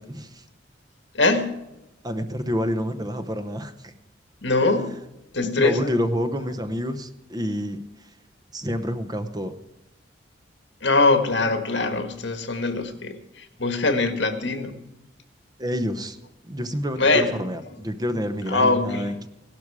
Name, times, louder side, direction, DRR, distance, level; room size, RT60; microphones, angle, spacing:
voice 1, 0.1-0.4 2.0-3.9 5.4-7.8 8.5-9.5 15.6-16.2 16.5-19.3, equal, 20° right, 9 dB, 0.8 m, -28 dB
voice 2, 1.1-1.5 4.4-4.9 5.3-5.9 10.8-14.8 17.0-17.3 18.5-19.1, left 3 dB, 75° left, 7 dB, 1.7 m, -22 dB
16.5 x 12.0 x 4.9 m, 0.94 s
head